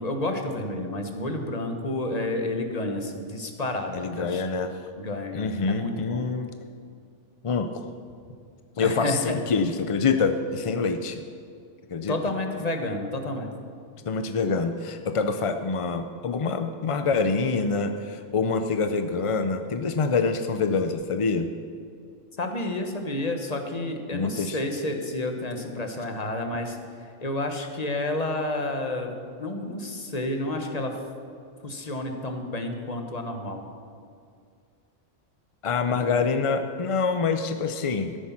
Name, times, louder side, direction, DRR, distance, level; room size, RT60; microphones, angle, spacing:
voice 1, 0.0-4.4 5.0-6.2 8.8-9.4 12.1-13.5 22.4-29.1 29.4-31.0 31.6-33.6 35.9-36.1, left 1 dB, 35° left, 4 dB, 1.2 m, -30 dB
voice 2, 3.9-4.7 5.3-6.5 7.4-7.9 8.8-11.2 11.9-12.2 14.0-21.5 24.1-24.6 35.6-38.2, left 4 dB, 50° left, 8 dB, 0.4 m, -26 dB
13.0 x 10.0 x 5.9 m, 2.3 s
omnidirectional pair, 1.3 m